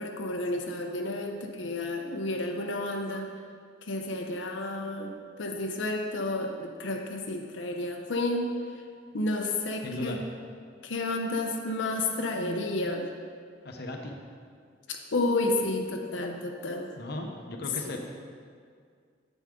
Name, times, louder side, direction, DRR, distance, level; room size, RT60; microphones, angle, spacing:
voice 1, 0.0-3.3 3.8-8.5 9.1-10.2 10.8-13.1 15.1-16.9 17.9-18.0, left 2 dB, 90° left, 1 dB, 0.8 m, -31 dB
voice 2, 9.8-10.2 13.6-14.1 17.0-18.0, left 1 dB, 60° left, 2 dB, 0.9 m, -36 dB
9.1 x 8.1 x 3.7 m, 2.1 s
head